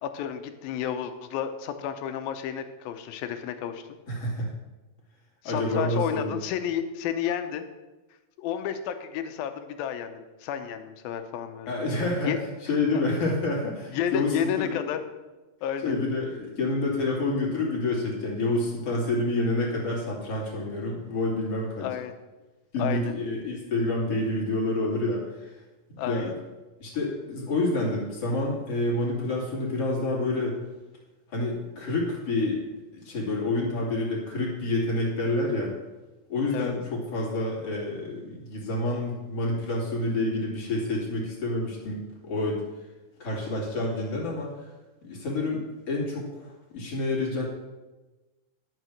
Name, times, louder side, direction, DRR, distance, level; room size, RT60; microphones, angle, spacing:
voice 1, 0.0-3.9 5.4-7.7 8.4-11.8 12.3-12.4 13.9-15.0 15.6-16.0 21.8-22.1 22.8-23.1 26.0-26.3 36.5-36.7, left 9 dB, 90° left, 8 dB, 2.6 m, -31 dB
voice 2, 4.1-4.5 5.4-6.3 11.7-12.3 12.7-14.8 15.8-21.9 22.7-25.6 25.9-26.3 26.8-30.6 31.3-32.6 32.9-35.7 36.3-42.6 43.2-44.7 45.0-47.5, left 2 dB, 45° left, -4 dB, 3.4 m, -28 dB
12.0 x 6.8 x 6.3 m, 1.1 s
omnidirectional pair, 4.2 m